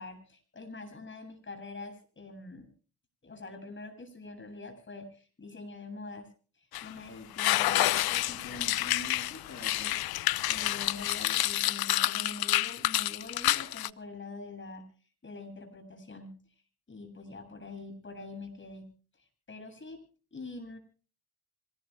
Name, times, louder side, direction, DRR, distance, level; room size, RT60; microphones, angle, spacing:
voice 1, 0.0-2.7 3.2-6.3 6.6-14.8 15.2-16.3 16.9-18.9 19.5-20.0 20.3-20.8, left 3 dB, 30° left, 7 dB, 8.0 m, -44 dB
sound 1, 6.7-6.9 7.4-13.9, left 15 dB, 65° left, 0.8 m, -29 dB
25.5 x 19.5 x 2.3 m, 0.40 s
cardioid pair, 85°, 39 cm